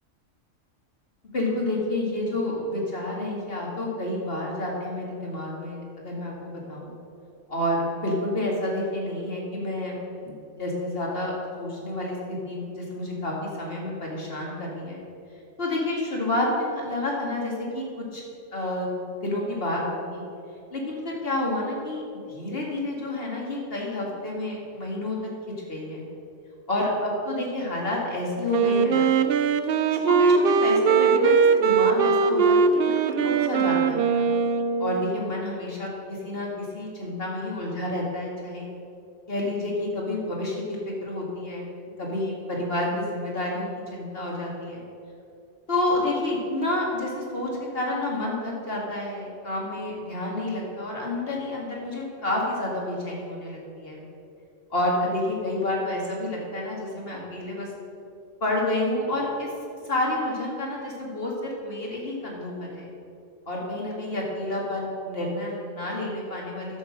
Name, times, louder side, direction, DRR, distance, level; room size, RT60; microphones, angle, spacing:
voice 1, 1.3-6.9 7.5-9.9 10.2-15.0 15.6-18.2 18.5-18.9 19.2-20.2 20.7-22.0 22.3-26.0 26.7-29.3 29.9-34.3 34.8-38.7 39.3-41.6 42.0-44.8 45.7-54.0 54.7-57.7 58.4-59.5 59.9-62.9 63.5-66.8, left 1 dB, 50° left, -3 dB, 2.5 m, -29 dB
Wind instrument woodwind instrument, 28.5-35.2, right 5 dB, 60° right, 0.7 m, -21 dB
10.5 x 7.3 x 6.5 m, 2.6 s
omnidirectional pair, 1.3 m